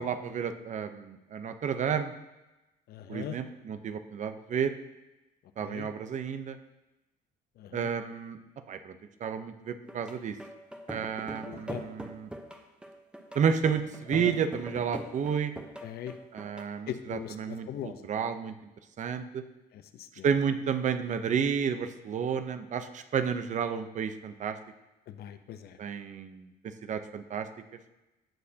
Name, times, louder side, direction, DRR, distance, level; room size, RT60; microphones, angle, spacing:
voice 1, 0.0-2.1 3.1-4.7 5.6-6.6 7.7-8.4 8.7-9.0 9.2-10.3 10.9-12.3 13.3-15.5 16.3-18.5 19.0-19.4 20.2-24.6 25.8-26.5 26.9-27.5, right 7 dB, 45° right, 9 dB, 0.8 m, -31 dB
voice 2, 2.9-3.4 5.6-5.9 7.6-7.9 11.4-11.8 14.1-14.3 15.8-16.1 16.9-18.0 19.7-20.3 25.1-25.8, left 11 dB, 70° left, 9 dB, 0.8 m, -40 dB
sound 1, 9.9-16.6, right 1 dB, 5° right, 1.0 m, -43 dB
17.0 x 6.6 x 2.9 m, 1.0 s
cardioid pair, 110°, 17 cm